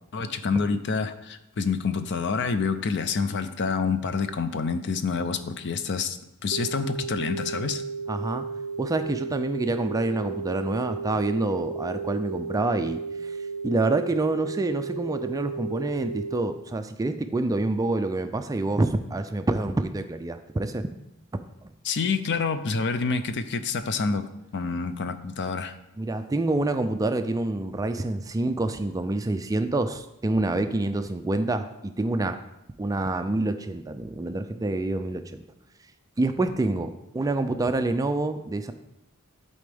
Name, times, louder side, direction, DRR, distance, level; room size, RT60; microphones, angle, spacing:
voice 1, 0.1-7.8 21.8-25.7, left 5 dB, 55° left, 10 dB, 0.5 m, -27 dB
sound 1, 6.5-16.5, right 4 dB, 75° right, 0.5 m, -34 dB
voice 2, 8.1-8.5 8.8-13.4 13.6-20.9 21.3-21.7 26.0-32.4 32.8-35.4 36.2-38.7, right 2 dB, 15° right, 8 dB, 0.3 m, -27 dB
11.5 x 4.2 x 3.4 m, 0.87 s
head